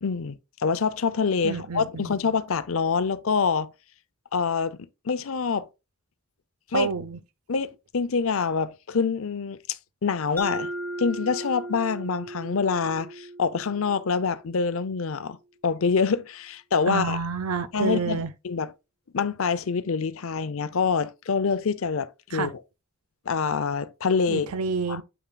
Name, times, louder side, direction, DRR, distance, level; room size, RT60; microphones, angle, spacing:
voice 1, 0.0-3.7 4.3-5.7 6.7-6.9 7.5-10.7 11.0-15.4 15.6-17.2 17.7-18.7 19.1-22.6 23.3-24.5 24.9-25.0, left 5 dB, 70° left, 0.6 m, -26 dB
voice 2, 1.4-2.2 6.7-7.2 16.9-18.3 22.3-22.5 24.3-25.0, right 5 dB, 85° right, 0.6 m, -29 dB
Mallet percussion, 10.4-14.9, right 1 dB, 10° left, 1.4 m, -37 dB
8.1 x 5.7 x 2.3 m
head